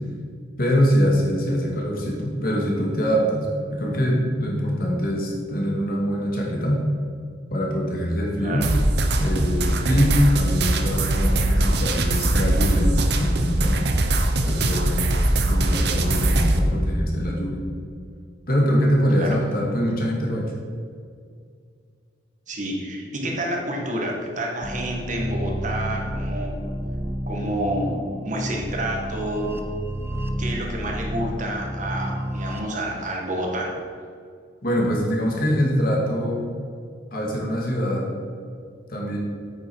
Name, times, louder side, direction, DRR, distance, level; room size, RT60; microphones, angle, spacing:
voice 1, 0.6-6.8 7.5-8.7 9.2-13.9 14.4-15.1 15.3-17.6 18.5-20.5 34.6-36.5 37.1-38.1 38.9-39.2, equal, 50° left, -2 dB, 2.4 m, -23 dB
sound 1, 8.6-16.6, right 1 dB, 60° right, 0.9 m, -21 dB
voice 2, 22.5-26.6 27.3-29.6 30.4-33.8, right 1 dB, 45° right, 0 dB, 1.8 m, -29 dB
sound 2, 24.6-32.6, equal, 15° right, 0.7 m, -30 dB
9.2 x 8.7 x 4.7 m, 2.2 s
head